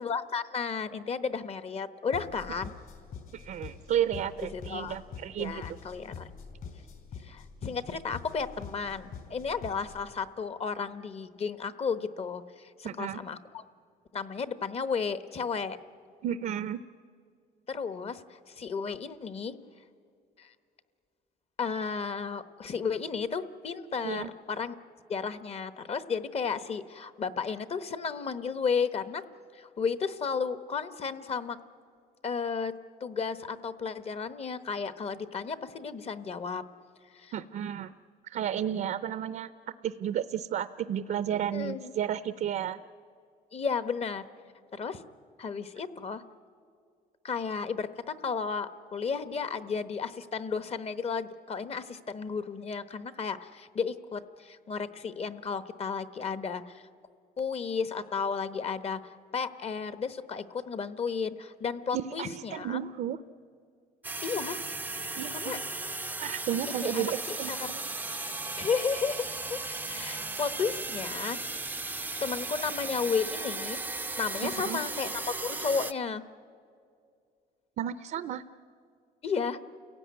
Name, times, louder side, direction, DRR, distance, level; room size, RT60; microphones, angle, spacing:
voice 1, 0.0-2.7 4.5-5.0 5.4-6.3 7.2-13.6 14.1-15.8 17.7-19.5 20.4-20.5 21.6-24.7 25.1-29.2 29.5-31.6 32.2-32.7 33.0-36.6 37.1-37.3 41.5-41.9 43.5-44.3 44.7-45.0 45.4-46.2 47.2-56.8 57.4-62.8 64.2-64.6 65.3-65.6 66.7-67.7 68.6-69.2 69.5-71.4 71.9-73.8 74.2-76.2 79.2-79.6, left 5 dB, 35° left, 13 dB, 1.1 m, -33 dB
sound 1, 2.1-10.1, left 6 dB, 60° left, 4.4 m, -45 dB
voice 2, 3.3-5.6 12.8-13.2 16.2-16.8 24.0-24.3 37.3-37.9 38.3-39.5 39.8-42.8 61.9-63.2 65.2-65.6 66.2-67.8 74.4-74.8 77.8-78.4, right 10 dB, 55° right, 14 dB, 0.6 m, -32 dB
sound 2, 64.0-75.9, right 3 dB, 10° right, 0.5 m, -36 dB
29.0 x 16.5 x 9.6 m, 2.3 s
cardioid pair, 110°, 17 cm